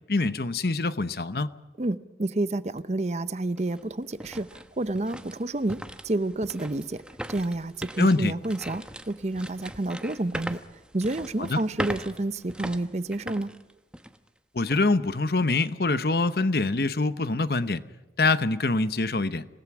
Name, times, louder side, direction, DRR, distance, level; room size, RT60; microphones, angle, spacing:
voice 1, 0.1-1.5 8.0-8.3 11.4-11.6 14.5-17.8 18.2-19.5, left 3 dB, 60° left, 13 dB, 0.9 m, -24 dB
voice 2, 1.8-7.0 7.3-10.6 10.9-13.5, right 2 dB, 40° right, 14 dB, 0.7 m, -29 dB
sound 1, 2.8-2.9 3.4-14.3 14.7-14.8 15.4-15.7, right 1 dB, 5° right, 0.8 m, -40 dB
27.0 x 18.0 x 6.1 m, 1.1 s
head